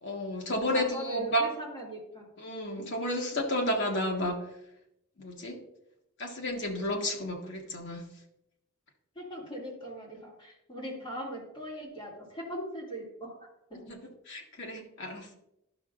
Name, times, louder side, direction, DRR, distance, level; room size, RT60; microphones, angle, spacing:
voice 1, 0.0-1.5 2.4-4.4 5.2-5.6 6.2-8.0 13.9-14.0 14.3-15.4, equal, 55° left, 1 dB, 1.3 m, -31 dB
voice 2, 0.7-2.3 2.8-2.9 9.1-13.9, right 1 dB, 20° left, -6 dB, 2.3 m, -40 dB
12.0 x 5.8 x 2.4 m, 0.84 s
head